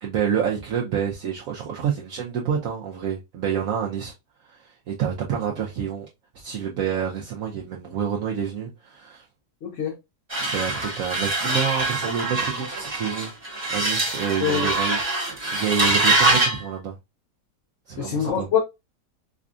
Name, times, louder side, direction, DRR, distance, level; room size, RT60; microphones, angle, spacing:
voice 1, 0.0-4.1 4.4-6.1 6.3-9.3 10.4-13.3 13.7-16.9 17.9-18.5, right 8 dB, 65° right, 1.0 m, -28 dB
voice 2, 9.6-9.9 14.4-14.7 15.4-15.5 18.0-18.6, left 8 dB, 60° left, 0.9 m, -24 dB
sound 1, 10.3-16.6, right 2 dB, 20° right, 1.1 m, -24 dB
5.0 x 2.4 x 2.5 m
omnidirectional pair, 1.8 m